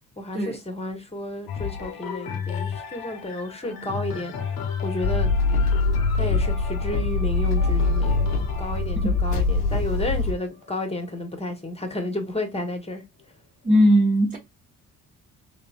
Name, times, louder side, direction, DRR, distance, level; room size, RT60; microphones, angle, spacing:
voice 1, 0.2-5.3 6.1-13.0, left 1 dB, 15° left, 1.2 m, -32 dB
sound 1, 1.5-11.3 11.9-12.0, left 7 dB, 50° left, 1.0 m, -34 dB
sound 2, 5.0-10.3, left 3 dB, 85° left, 0.9 m, -23 dB
voice 2, 13.6-14.4, equal, 15° right, 1.2 m, -18 dB
3.9 x 2.6 x 2.4 m
hypercardioid pair, 45°, 44 cm